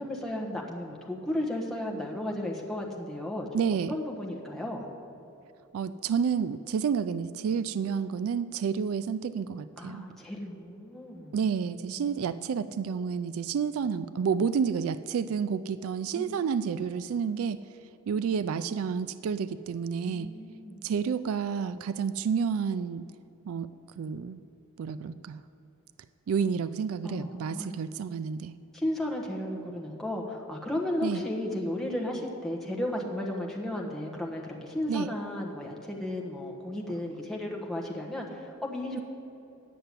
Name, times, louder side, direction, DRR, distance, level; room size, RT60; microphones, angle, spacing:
voice 1, 0.0-3.5 3.9-4.9 9.8-11.3 11.9-12.2 14.4-14.5 16.1-16.3 20.0-20.8 27.0-27.8 28.7-39.0, left 1 dB, ahead, -2 dB, 1.2 m, -34 dB
voice 2, 3.5-3.9 5.7-10.0 11.3-17.6 18.1-20.3 20.8-23.0 23.5-23.7 24.0-24.4 24.8-25.4 26.3-28.6 31.0-31.2 34.9-35.1, right 6 dB, 65° right, 14 dB, 0.3 m, -30 dB
9.4 x 6.8 x 8.2 m, 2.8 s
head